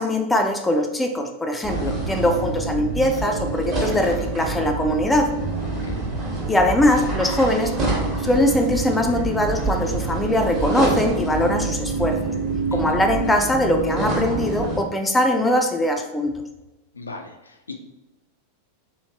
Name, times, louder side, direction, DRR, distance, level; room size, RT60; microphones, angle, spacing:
voice 1, 0.0-5.3 6.5-7.8 8.2-12.2 12.7-16.3, left 1 dB, 10° left, 4 dB, 0.4 m, -21 dB
sound 1, 1.6-14.8, right 3 dB, 30° right, 1.1 m, -26 dB
voice 2, 16.9-17.8, left 3 dB, 80° left, 3 dB, 0.3 m, -38 dB
3.1 x 2.7 x 2.8 m, 1.0 s
figure-of-eight pair, 90°, 0 cm